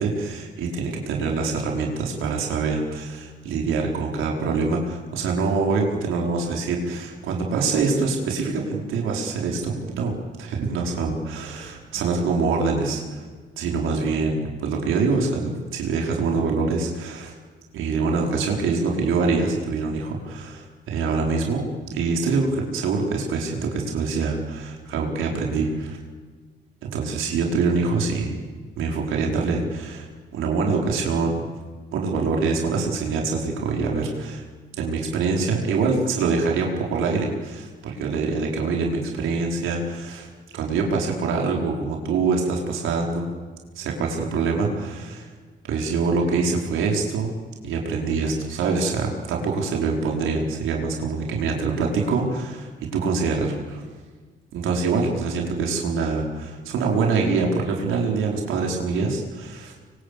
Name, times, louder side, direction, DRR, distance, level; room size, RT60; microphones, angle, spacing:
voice 1, 0.0-13.2 13.6-17.3 17.7-26.0 26.8-28.4 28.8-31.4 31.9-34.4 34.8-40.3 40.5-43.3 43.7-45.3 45.7-47.3 47.6-53.8 54.5-59.7, right 4 dB, 85° right, 0 dB, 5.1 m, -25 dB
25.5 x 24.5 x 8.8 m, 1.4 s
cardioid pair, 90°, 20 cm